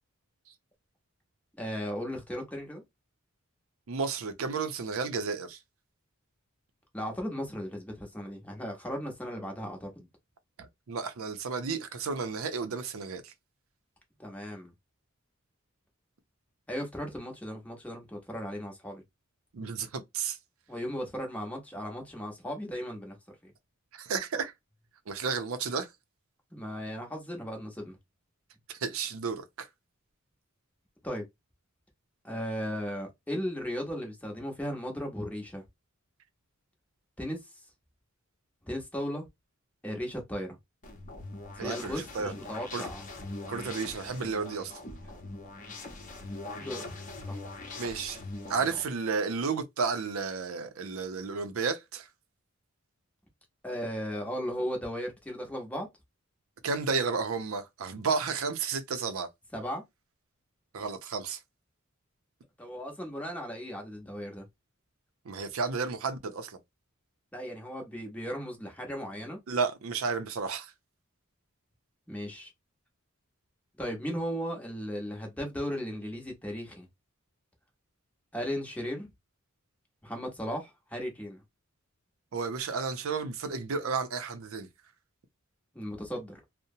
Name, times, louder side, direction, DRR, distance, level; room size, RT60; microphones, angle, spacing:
voice 1, 1.6-2.8 6.9-10.1 14.2-14.7 16.7-19.0 20.7-23.2 23.4-23.5 26.5-28.0 31.0-31.2 32.2-35.6 37.2-37.4 38.6-39.3 39.8-40.6 41.6-43.0 43.5-43.7 45.7-45.8 46.6-46.8 47.3-47.4 53.6-55.9 59.5-59.8 62.6-64.4 67.3-69.4 72.1-72.5 73.8-76.9 78.3-79.1 80.0-81.4 85.7-86.4, equal, 5° left, 0.8 m, -36 dB
voice 2, 3.9-5.6 10.6-13.3 19.5-20.4 23.9-24.5 25.1-25.9 28.7-29.7 41.6-42.3 42.7-42.8 43.5-44.8 47.7-48.2 48.5-52.1 56.6-59.3 60.7-61.4 65.3-66.6 69.5-70.7 82.3-84.7, right 5 dB, 80° right, 0.5 m, -32 dB
sound 1, 40.8-48.8, left 2 dB, 40° left, 0.7 m, -42 dB
2.8 x 2.0 x 2.6 m
head